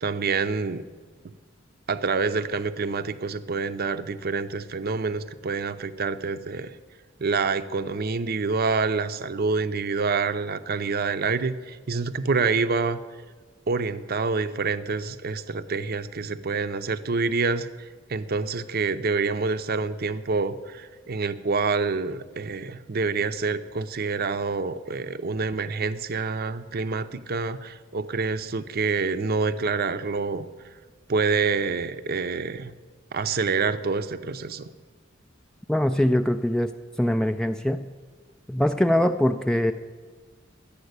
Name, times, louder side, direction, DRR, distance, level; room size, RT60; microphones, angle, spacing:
voice 1, 0.0-0.8 1.9-6.8 7.2-13.0 13.7-30.4 31.1-32.7 33.1-34.7, right 4 dB, 50° right, 11 dB, 0.6 m, -27 dB
voice 2, 35.7-36.7 37.0-37.9 38.5-39.7, left 1 dB, 5° left, 7 dB, 0.3 m, -22 dB
12.0 x 8.6 x 8.1 m, 1.4 s
head